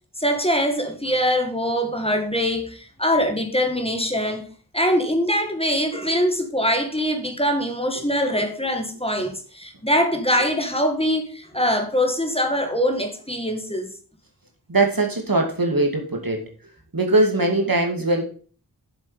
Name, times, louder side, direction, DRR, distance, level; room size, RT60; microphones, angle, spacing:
voice 1, 0.2-4.5 4.7-13.9, equal, 15° left, 2.0 m, -23 dB
voice 2, 14.7-16.4 16.9-18.2, right 2 dB, 60° right, 2.5 m, -21 dB
7.8 x 7.4 x 5.6 m
wide cardioid pair, 50°, 40 cm